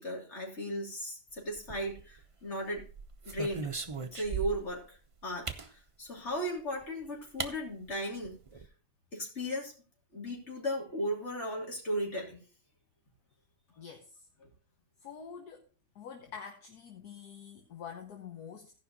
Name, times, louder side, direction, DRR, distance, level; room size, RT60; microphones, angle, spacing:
voice 1, 0.0-2.8 3.3-3.7 4.0-5.0 5.2-8.4 9.1-9.7 10.1-12.4 14.4-14.5, equal, 40° left, -1 dB, 3.5 m, -36 dB
sound 1, 1.6-2.3 2.8-4.8 5.5-5.7 6.8-6.9 7.4-7.5 7.9-8.0 8.2-8.7, right 5 dB, 35° right, 0.5 m, -38 dB
voice 2, 13.8-14.2 15.0-15.7 16.0-18.7, left 7 dB, 65° left, 4 dB, 1.6 m, -46 dB
16.5 x 5.6 x 4.1 m, 0.35 s
omnidirectional pair, 1.8 m